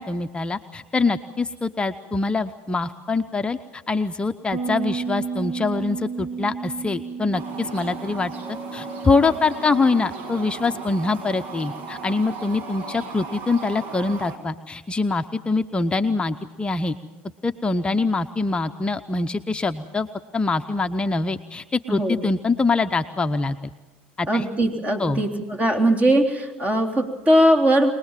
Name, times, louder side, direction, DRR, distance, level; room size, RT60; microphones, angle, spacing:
voice 1, 0.0-8.3 8.7-16.9 17.4-20.1 20.3-23.7 24.2-24.4 25.0-25.2, left 3 dB, 20° left, 7 dB, 0.8 m, -24 dB
Bass guitar, 4.5-13.9, right 5 dB, 50° right, 1.2 m, -35 dB
sound 1, 7.3-14.4, right 4 dB, 70° right, 2.9 m, -36 dB
voice 2, 24.3-27.9, right 1 dB, 25° right, 2 dB, 3.7 m, -20 dB
24.5 x 20.0 x 7.5 m, 1.1 s
hypercardioid pair, 85°, 5 cm